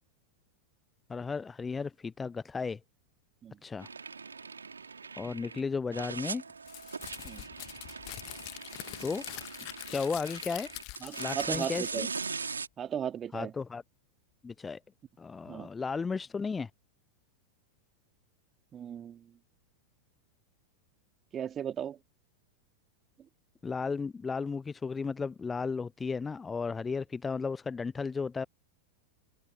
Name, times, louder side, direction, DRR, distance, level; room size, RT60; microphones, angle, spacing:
voice 1, 1.1-2.8 3.6-3.9 5.2-6.4 9.0-9.2 9.9-10.7 11.2-12.1 13.3-13.8 14.4-14.8 15.2-16.7 23.6-28.5, left 5 dB, 15° left, 0.6 m, -34 dB
sound 1, 3.8-5.6 5.9-12.7, right 5 dB, 75° right, 2.8 m, -40 dB
Crumpling crinkling, 6.7-12.6, left 28 dB, 45° left, 1.4 m, -44 dB
voice 2, 11.0-12.1 12.8-13.5 15.5-15.7 18.7-19.2 21.3-22.0, right 9 dB, 25° right, 3.3 m, -36 dB
figure-of-eight pair, 90°, 0 cm